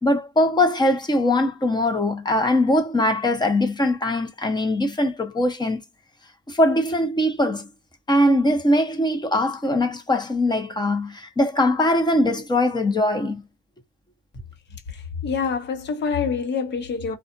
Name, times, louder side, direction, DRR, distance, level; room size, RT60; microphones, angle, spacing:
voice 1, 0.0-5.8 6.5-7.7 8.1-13.4, left 1 dB, 20° left, 1.0 m, -21 dB
voice 2, 14.9-17.2, left 5 dB, 60° left, 1.0 m, -26 dB
2.4 x 2.4 x 2.5 m
cardioid pair, 90°, 20 cm